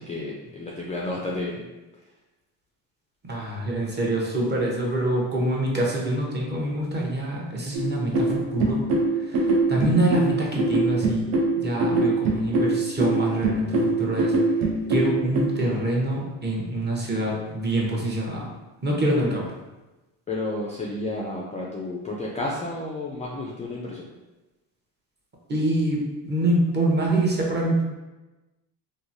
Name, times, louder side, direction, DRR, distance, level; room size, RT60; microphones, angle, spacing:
voice 1, 0.0-1.6 20.3-24.0, left 2 dB, 20° left, -3 dB, 0.3 m, -31 dB
voice 2, 3.2-8.8 9.1-14.3 14.9-18.5 18.8-19.5 25.5-27.8, right 1 dB, 25° right, -3 dB, 0.8 m, -25 dB
sound 1, 7.7-15.4, right 2 dB, 85° right, 0.6 m, -23 dB
2.9 x 2.0 x 2.6 m, 1.1 s
supercardioid pair, 80°, 43 cm